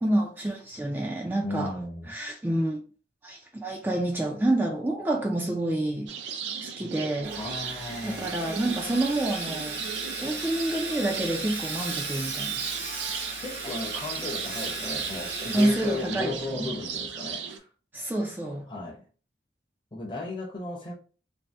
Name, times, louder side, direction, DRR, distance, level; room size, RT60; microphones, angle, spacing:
voice 1, 0.0-1.8 2.1-2.8 3.2-6.1 6.6-7.3 8.0-9.8 10.2-12.6 13.3-13.4 15.5-16.6 17.9-18.7, right 1 dB, 10° right, 0.3 m, -28 dB
voice 2, 1.4-2.2 7.4-8.3 13.4-17.6 18.7-19.0 19.9-20.9, left 2 dB, 25° left, 0.7 m, -35 dB
sound 1, 6.1-17.6, right 7 dB, 85° right, 0.4 m, -37 dB
Sawing, 7.2-16.7, right 3 dB, 65° right, 1.0 m, -36 dB
2.6 x 2.0 x 3.3 m
head